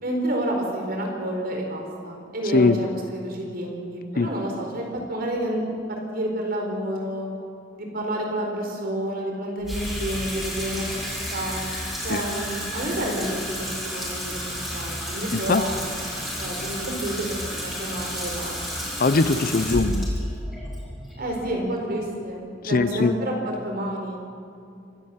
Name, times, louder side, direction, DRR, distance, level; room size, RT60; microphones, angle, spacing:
voice 1, 0.0-7.3 7.8-11.6 12.0-14.4 14.7-15.8 16.4-18.8 19.3-19.5 19.8-19.9 21.2-24.2, right 1 dB, 55° right, 1 dB, 4.6 m, -29 dB
voice 2, 2.5-2.8 4.2-4.3 12.1-12.2 15.3-15.6 19.0-20.1 22.6-23.2, left 3 dB, 50° left, 13 dB, 0.7 m, -21 dB
Water tap faucet / Sink (filling or washing), 9.6-22.0, equal, ahead, 5.9 m, -31 dB
25.5 x 12.0 x 8.5 m, 2.5 s
head